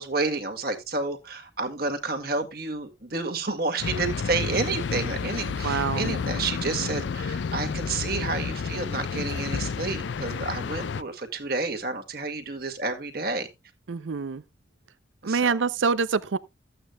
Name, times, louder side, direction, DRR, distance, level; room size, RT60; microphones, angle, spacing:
voice 1, 0.0-13.5 15.2-15.5, right 3 dB, 55° right, 2.0 m, -30 dB
sound 1, 3.8-11.0, left 5 dB, 70° left, 0.4 m, -30 dB
voice 2, 5.6-6.1 13.9-14.4 15.2-16.4, right 5 dB, 85° right, 0.6 m, -25 dB
14.5 x 8.8 x 2.2 m
head